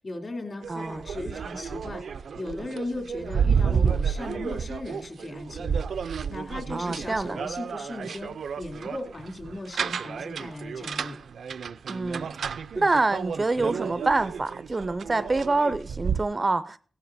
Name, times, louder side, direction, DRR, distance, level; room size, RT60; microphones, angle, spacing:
voice 1, 0.0-2.0 2.4-5.8 6.3-11.2, left 2 dB, 40° left, 2.9 m, -37 dB
sound 1, 0.6-16.2, right 6 dB, 85° right, 0.4 m, -31 dB
voice 2, 0.7-1.0 6.7-7.4 11.9-12.3 12.8-16.8, right 3 dB, 30° right, 0.4 m, -26 dB
16.5 x 12.0 x 2.6 m
wide cardioid pair, 130°, 0 cm